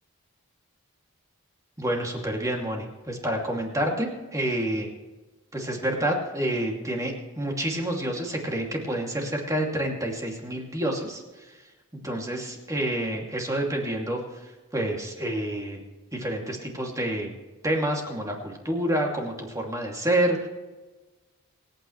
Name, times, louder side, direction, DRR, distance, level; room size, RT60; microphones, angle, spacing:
voice 1, 1.8-4.9 5.5-11.2 12.0-14.2 14.7-15.8 16.1-17.3 17.6-20.5, right 1 dB, 15° right, 0 dB, 2.6 m, -28 dB
27.0 x 9.2 x 3.2 m, 1.2 s
head